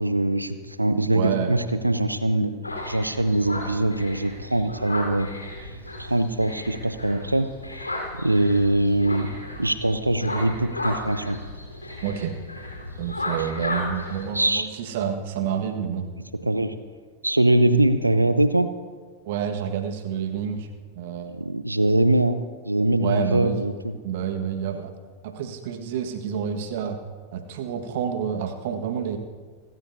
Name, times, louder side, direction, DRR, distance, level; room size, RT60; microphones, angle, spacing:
voice 1, 0.0-2.5 2.9-5.3 5.6-5.7 6.0-7.9 8.2-9.3 9.6-11.4 14.3-14.7 16.4-16.7 17.2-18.7 21.3-24.0, right 1 dB, 85° right, 12 dB, 0.8 m, -22 dB
voice 2, 1.1-1.5 12.0-12.3 13.0-16.1 16.4-16.5 19.2-20.7 20.9-21.4 23.0-23.6 24.0-24.9 25.2-27.0 27.3-29.2, right 8 dB, 50° right, 6 dB, 1.6 m, -28 dB
sound 1, 2.6-14.3, left 1 dB, 85° left, 4.3 m, -34 dB
29.0 x 14.0 x 2.8 m, 1.5 s
figure-of-eight pair, 90°, 0 cm